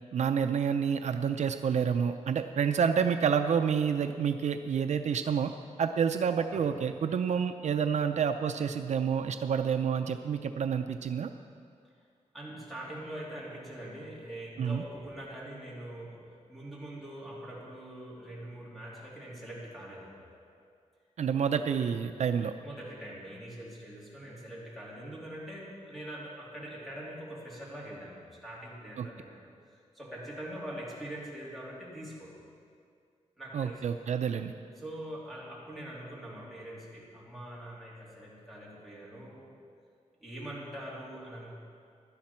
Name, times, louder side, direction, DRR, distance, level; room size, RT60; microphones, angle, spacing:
voice 1, 0.1-5.5 5.8-11.3 14.6-14.8 21.2-22.5 29.0-29.1 33.5-34.5, right 7 dB, 70° right, 8 dB, 0.5 m, -28 dB
voice 2, 12.3-20.3 22.6-32.3 33.4-33.8 34.8-39.6 40.2-41.5, right 1 dB, ahead, -7 dB, 2.9 m, -43 dB
16.5 x 11.5 x 4.4 m, 2.3 s
wide cardioid pair, 170°, 12 cm